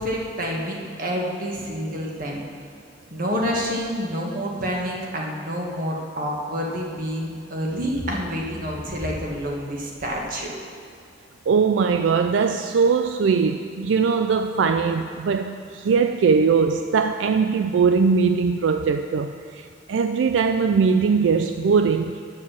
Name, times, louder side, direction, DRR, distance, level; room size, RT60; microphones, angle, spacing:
voice 1, 0.0-2.4 3.1-10.5, equal, 50° right, 1.7 m, -28 dB
voice 2, 11.5-22.2, right 5 dB, 80° right, 0.4 m, -20 dB
10.0 x 6.5 x 7.3 m
head